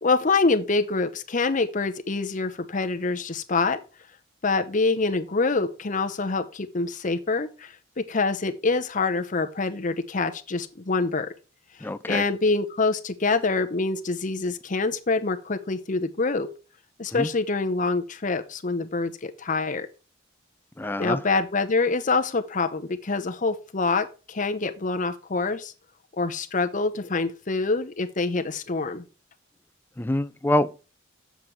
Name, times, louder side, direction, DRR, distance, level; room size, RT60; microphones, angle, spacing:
voice 1, 0.0-3.8 4.4-11.3 11.8-16.5 17.0-19.9 21.0-25.7 26.2-29.0, left 3 dB, 40° left, 0.8 m, -26 dB
voice 2, 11.8-12.2 17.1-17.3 20.8-21.2 30.0-30.8, left 1 dB, 10° left, 0.4 m, -26 dB
7.3 x 7.2 x 4.6 m
head